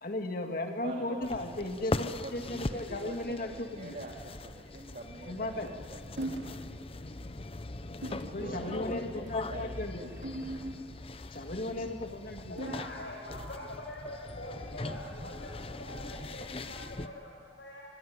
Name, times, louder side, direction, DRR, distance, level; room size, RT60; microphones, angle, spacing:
voice 1, 0.0-4.0 5.2-5.7 8.2-10.1 11.3-12.6, left 2 dB, 50° left, 4 dB, 2.2 m, -36 dB
voice 2, 0.8-1.9 2.2-5.6 5.9-7.0 8.3-10.3, right 2 dB, 45° right, 0 dB, 2.4 m, -46 dB
sound 1, 1.2-17.1, left 2 dB, 30° left, 0.8 m, -40 dB
sound 2, 6.2-6.6 7.1-7.2 8.0-8.4 9.2-9.5 10.2-11.1 12.6-13.1, right 1 dB, 80° right, 3.1 m, -39 dB
sound 3, 10.1-14.1 14.4-14.6 15.0-15.1, equal, 15° right, 2.9 m, -57 dB
voice 3, 12.2-17.8, left 1 dB, 70° left, -3 dB, 5.5 m, -44 dB
24.5 x 22.0 x 9.8 m, 2.2 s
head